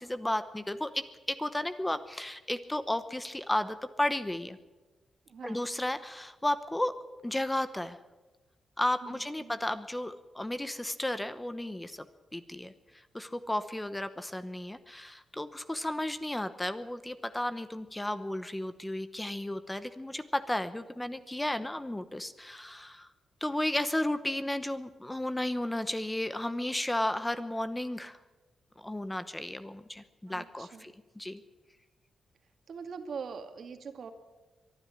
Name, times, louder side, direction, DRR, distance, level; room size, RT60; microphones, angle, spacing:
voice 1, 0.1-4.6 5.4-6.9 7.2-8.0 8.8-12.0 12.3-23.1 23.4-28.2 28.8-31.4, left 1 dB, 10° left, 12 dB, 0.9 m, -33 dB
voice 2, 5.3-5.6 9.0-9.6 30.3-30.9 32.7-34.1, right 5 dB, 60° right, 7 dB, 2.3 m, -43 dB
23.0 x 12.0 x 9.9 m, 1.2 s
cardioid pair, 115°, 0 cm